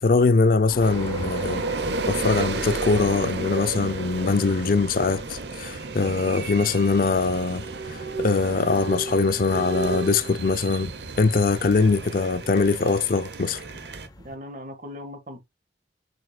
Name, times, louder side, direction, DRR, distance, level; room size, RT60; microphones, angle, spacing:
voice 1, 0.0-1.6 2.1-10.9 11.2-13.6, left 4 dB, 50° left, 0.5 m, -22 dB
sound 1, 0.7-14.4, left 1 dB, 20° left, 0.8 m, -43 dB
sound 2, 0.8-14.1, right 3 dB, 70° right, 0.9 m, -32 dB
voice 2, 14.2-15.4, left 1 dB, 45° right, 1.6 m, -39 dB
6.8 x 6.2 x 2.3 m
head